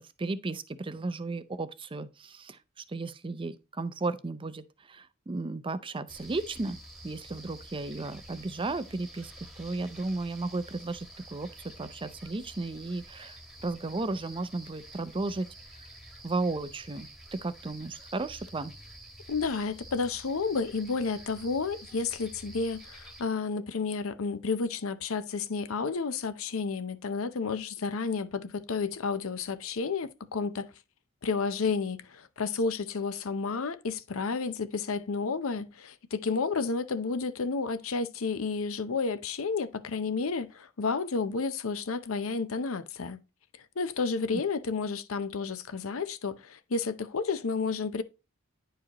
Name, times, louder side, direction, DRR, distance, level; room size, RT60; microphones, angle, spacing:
voice 1, 0.0-2.6 2.9-11.5 11.8-15.5 16.2-18.7 44.3-44.4, right 3 dB, 25° right, 0.5 m, -34 dB
sound 1, 6.1-23.2, right 1 dB, ahead, 1.3 m, -49 dB
voice 2, 19.3-30.7 31.2-43.2 43.8-48.0, left 4 dB, 65° left, 0.6 m, -31 dB
10.0 x 4.8 x 2.9 m
head